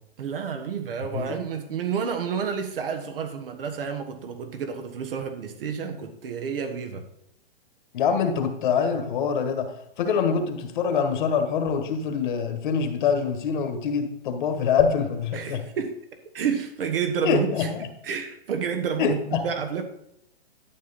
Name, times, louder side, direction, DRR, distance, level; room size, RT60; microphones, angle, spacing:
voice 1, 0.2-7.0 15.3-16.0 16.3-17.7 18.0-19.8, right 7 dB, 65° right, 6 dB, 1.4 m, -30 dB
voice 2, 7.9-15.6 17.2-17.9 19.0-19.5, left 6 dB, 50° left, 6 dB, 1.5 m, -25 dB
11.0 x 6.0 x 4.2 m, 0.78 s
hypercardioid pair, 140°, 30 cm